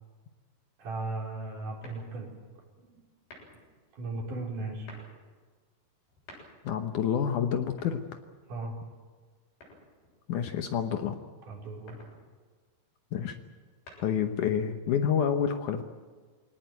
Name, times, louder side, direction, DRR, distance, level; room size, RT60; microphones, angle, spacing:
voice 1, 0.8-2.3 2.8-3.0 4.0-4.9 8.5-8.8 11.5-12.0, right 2 dB, 55° right, 0 dB, 5.4 m, -36 dB
sound 1, 1.8-2.4 3.2-3.7 4.7-5.2 6.0-6.8 7.6-8.6 9.6-10.2 11.7-12.2 13.5-14.4, left 1 dB, 85° left, 9.3 m, -52 dB
voice 2, 6.6-8.0 10.3-11.2 13.1-13.4 14.0-15.8, left 8 dB, 70° left, 7 dB, 2.2 m, -28 dB
23.0 x 18.5 x 9.2 m, 1.5 s
omnidirectional pair, 4.3 m